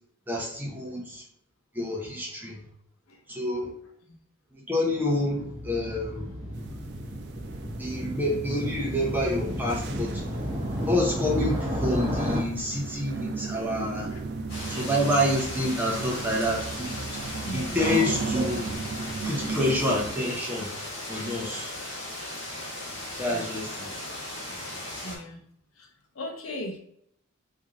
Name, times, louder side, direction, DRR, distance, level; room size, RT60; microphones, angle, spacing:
voice 1, 0.3-1.2 1.7-2.6 3.3-3.7 4.5-6.3 7.8-10.2 10.9-14.1 14.7-18.8 19.2-20.8 21.1-21.7 23.2-24.1, left 1 dB, 10° right, -2 dB, 0.6 m, -28 dB
Motorcycle, 4.9-12.4, equal, 30° right, 1.0 m, -32 dB
sound 1, 6.5-20.1, right 4 dB, 50° right, 0.3 m, -36 dB
Heavy Rain with Thunder, 14.5-25.2, left 1 dB, 45° left, 1.3 m, -37 dB
voice 2, 17.4-17.8 23.3-23.5 25.0-25.4 25.8-25.9 26.1-26.8, left 1 dB, 70° left, 3 dB, 0.7 m, -38 dB
3.2 x 2.7 x 3.7 m, 0.69 s
head